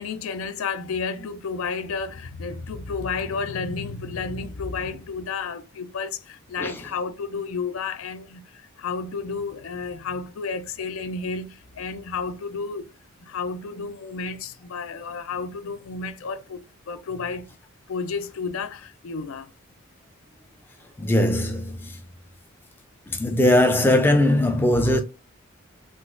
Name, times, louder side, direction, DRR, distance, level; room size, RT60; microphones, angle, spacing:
voice 1, 0.0-8.4 8.8-12.9 13.2-17.5 17.9-19.5, left 4 dB, 80° left, 0.4 m, -31 dB
voice 2, 21.0-22.0 23.1-25.0, left 1 dB, 10° left, 0.3 m, -20 dB
3.8 x 2.4 x 2.4 m
head